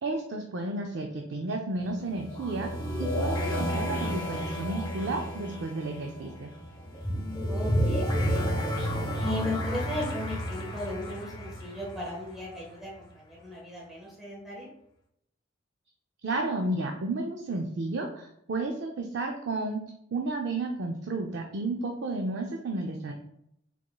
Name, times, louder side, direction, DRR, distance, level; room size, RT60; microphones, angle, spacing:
voice 1, 0.0-2.7 3.0-6.5 16.2-19.8 20.1-23.1, right 2 dB, 60° right, 2 dB, 0.5 m, -32 dB
sound 1, 1.8-12.6, equal, 20° left, 0.7 m, -31 dB
voice 2, 7.5-8.5 9.2-14.7, left 1 dB, ahead, -5 dB, 1.2 m, -36 dB
4.7 x 3.7 x 2.2 m, 0.75 s
head